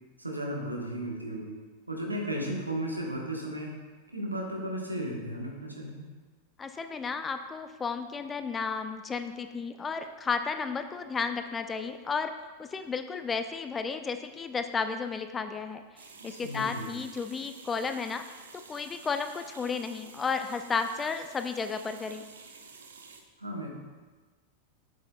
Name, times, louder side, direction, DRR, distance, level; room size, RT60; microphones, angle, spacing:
voice 1, 0.2-1.6 1.9-3.7 4.1-6.0 16.2-17.0 23.4-23.7, right 1 dB, 85° right, 0 dB, 1.2 m, -35 dB
voice 2, 6.6-12.3 12.6-15.8 16.2-18.2 18.5-22.2, left 5 dB, 20° left, 8 dB, 0.4 m, -33 dB
sound 1, 16.0-23.2, right 5 dB, 70° right, 0.6 m, -50 dB
7.8 x 6.7 x 2.3 m, 1.3 s
figure-of-eight pair, 90°, 0 cm